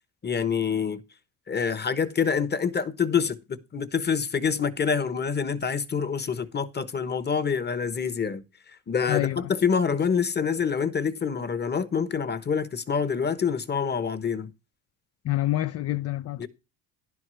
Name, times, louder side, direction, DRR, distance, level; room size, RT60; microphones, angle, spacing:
voice 1, 0.2-1.0 1.5-8.4 8.9-14.5 16.4-16.5, left 6 dB, 25° left, 1.1 m, -26 dB
voice 2, 9.1-9.5 15.2-16.5, left 15 dB, 40° left, 0.4 m, -27 dB
10.5 x 4.7 x 6.2 m
supercardioid pair, 80°, 38 cm